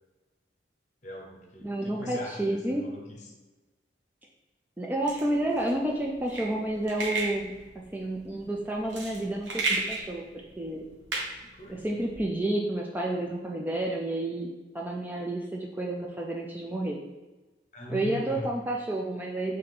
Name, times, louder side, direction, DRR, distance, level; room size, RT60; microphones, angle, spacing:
voice 1, 1.0-3.3 11.4-12.0 17.7-18.5, equal, 40° left, 0 dB, 0.8 m, -41 dB
voice 2, 1.6-2.8 4.8-10.3 10.6-10.8 11.7-14.5 14.7-17.0 17.9-19.6, right 1 dB, 10° right, -1 dB, 0.3 m, -30 dB
sound 1, 5.0-12.2, right 3 dB, 85° right, 1.0 m, -34 dB
4.0 x 3.2 x 3.5 m, 1.2 s
head